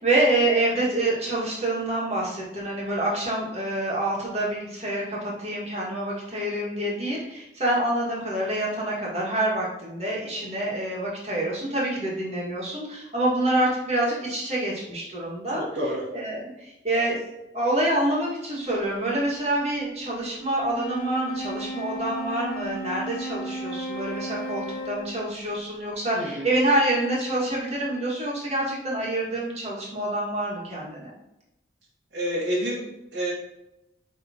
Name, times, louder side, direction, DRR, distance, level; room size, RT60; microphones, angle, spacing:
voice 1, 0.0-15.6 16.1-17.2 17.5-31.1, right 1 dB, 35° right, -5 dB, 1.9 m, -27 dB
voice 2, 15.5-16.1 26.1-26.5 32.1-33.3, equal, 70° right, -8 dB, 1.5 m, -29 dB
Wind instrument woodwind instrument, 20.6-25.4, right 1 dB, 50° left, 0.6 m, -34 dB
9.1 x 3.6 x 2.9 m, 0.91 s
head